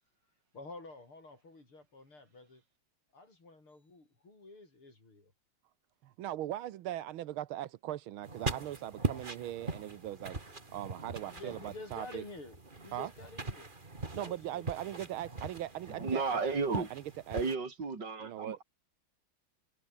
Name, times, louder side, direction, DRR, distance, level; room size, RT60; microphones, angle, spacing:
voice 1, 0.5-2.6 3.1-5.3 11.3-13.7 14.1-14.9, left 2 dB, 85° left, 8.4 m, -50 dB
voice 2, 6.0-12.2 12.9-13.1 14.1-16.2 16.8-16.9 17.3-17.4 18.2-18.6, right 13 dB, 80° right, 1.7 m, -40 dB
sound 1, 8.2-17.6, right 3 dB, 25° right, 2.5 m, -41 dB
voice 3, 15.9-16.9 17.3-18.6, right 4 dB, 55° right, 4.6 m, -33 dB
omnidirectional pair, 2.3 m